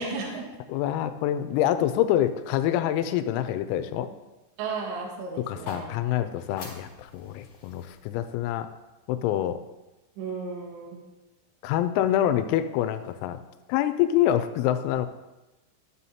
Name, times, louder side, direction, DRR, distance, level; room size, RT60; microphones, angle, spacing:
voice 1, 0.0-0.5 4.6-5.8 10.2-11.0, right 4 dB, 70° right, -1 dB, 3.3 m, -34 dB
voice 2, 0.7-4.1 5.5-8.7 9.1-9.6 11.6-13.4 13.7-15.1, left 11 dB, 90° left, 10 dB, 3.3 m, -26 dB
sound 1, 5.4-9.6, left 3 dB, 45° left, 2.6 m, -46 dB
11.5 x 7.6 x 2.8 m, 1.1 s
omnidirectional pair, 6.0 m